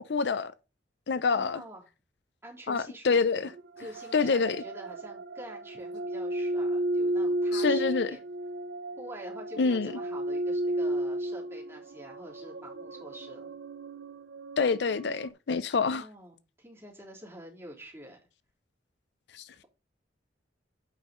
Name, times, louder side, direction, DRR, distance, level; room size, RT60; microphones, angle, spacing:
voice 1, 0.1-0.5 1.1-1.6 2.7-3.5 4.1-4.6 7.5-8.1 9.6-9.9 14.6-16.0 19.3-19.4, left 4 dB, 70° left, 0.5 m, -26 dB
voice 2, 1.2-1.8 2.4-3.5 3.8-8.2 9.0-13.5 15.7-18.2, right 1 dB, 15° right, 3.4 m, -47 dB
sound 1, 3.4-15.3, right 1 dB, 85° right, 0.5 m, -33 dB
9.2 x 5.5 x 3.8 m
head